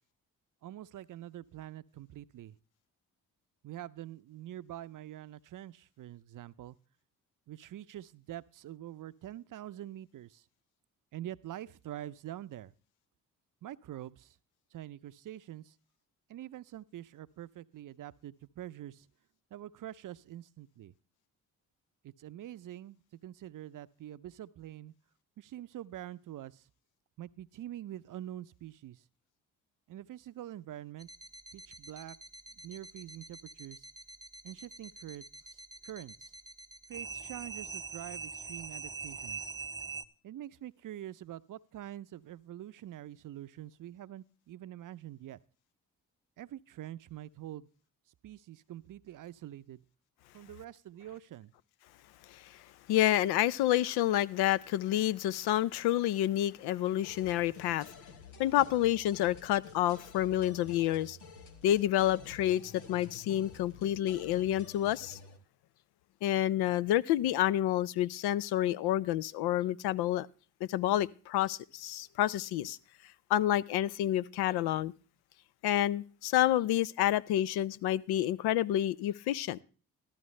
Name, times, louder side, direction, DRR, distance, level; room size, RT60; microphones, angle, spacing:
voice 1, 0.6-2.6 3.6-6.8 7.5-10.4 11.1-12.7 13.6-14.4 14.7-15.8 16.3-19.1 19.5-20.9 22.0-24.9 25.4-26.7 27.2-29.0 29.9-31.1 31.5-32.2 32.5-33.9 34.4-36.3 36.9-39.4 40.2-45.4 46.4-47.7 48.2-49.8 50.3-51.5, right 12 dB, 50° right, 0.6 m, -45 dB
sound 1, 31.0-40.1, right 4 dB, 10° right, 0.8 m, -44 dB
voice 2, 52.9-57.9 58.4-61.2 61.6-65.2 66.2-70.3 70.7-72.8 73.3-74.9 75.6-79.6, left 13 dB, 65° left, 0.5 m, -29 dB
sound 2, 57.0-65.4, left 4 dB, 85° left, 1.0 m, -51 dB
13.5 x 12.5 x 3.2 m
hypercardioid pair, 45°, 41 cm